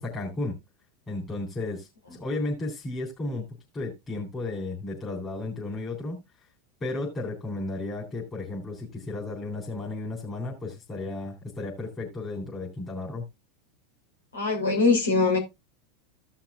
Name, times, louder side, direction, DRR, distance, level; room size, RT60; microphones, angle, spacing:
voice 1, 0.0-0.6 1.1-3.4 3.7-6.2 6.8-13.2, left 2 dB, 25° left, 3.6 m, -33 dB
voice 2, 14.3-15.4, left 4 dB, 85° left, 3.1 m, -22 dB
15.5 x 5.9 x 2.5 m
hypercardioid pair, 95°, 0 cm